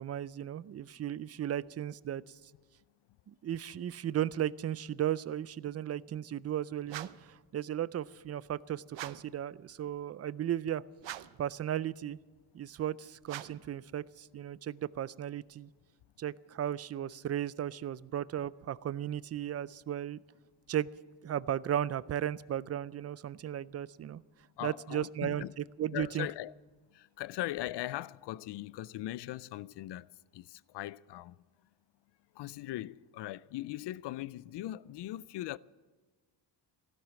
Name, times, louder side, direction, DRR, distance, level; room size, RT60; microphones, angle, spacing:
voice 1, 0.0-2.2 3.3-10.8 11.4-12.2 12.5-15.7 16.2-20.2 20.7-20.9 21.2-24.2 24.6-26.3, right 11 dB, 35° right, 0.4 m, -35 dB
sound 1, 6.9-7.3 8.9-9.4 11.0-11.5 13.2-13.7, right 13 dB, 80° right, 0.8 m, -44 dB
voice 2, 24.6-25.5 25.9-26.5 26.9-31.4 32.3-35.6, left 15 dB, 70° left, 0.5 m, -40 dB
16.0 x 12.0 x 7.6 m
cardioid pair, 145°, 44 cm